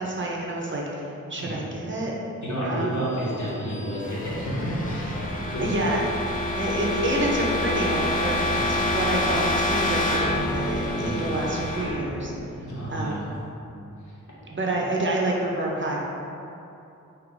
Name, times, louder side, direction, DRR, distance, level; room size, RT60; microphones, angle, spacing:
voice 1, 0.0-2.1 2.6-3.0 5.3-6.0 6.6-12.3 12.9-13.3 14.5-16.0, right 1 dB, 40° right, -3 dB, 0.5 m, -28 dB
voice 2, 1.4-1.7 2.4-5.7 8.5-8.7 10.7-11.3 12.6-13.3 14.0-14.1 14.8-14.9, equal, 60° left, -7 dB, 1.1 m, -31 dB
sound 1, 3.3-13.1, left 1 dB, 25° left, 0.5 m, -27 dB
2.7 x 2.4 x 3.7 m, 2.7 s
cardioid pair, 50°, 32 cm